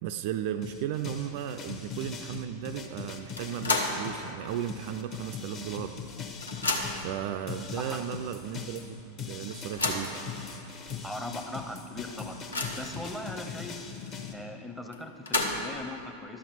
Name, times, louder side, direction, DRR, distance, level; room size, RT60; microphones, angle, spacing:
voice 1, 0.0-6.0 7.0-10.1, right 10 dB, 50° right, 9 dB, 0.3 m, -35 dB
sound 1, 0.6-7.1 7.5-14.3, left 5 dB, 35° left, 0.9 m, -41 dB
sound 2, 3.4-4.1 4.5-4.6 5.6-5.7 6.0-7.1 7.9-8.0 8.4-8.5 9.5-10.2 10.9-11.0 11.4-11.5 11.9-13.0 14.9-15.8, left 3 dB, 75° left, 0.8 m, -31 dB
voice 2, 11.0-13.9 14.3-16.4, left 1 dB, 5° left, 6 dB, 0.7 m, -39 dB
11.5 x 7.3 x 4.3 m, 2.8 s
figure-of-eight pair, 90°, 0 cm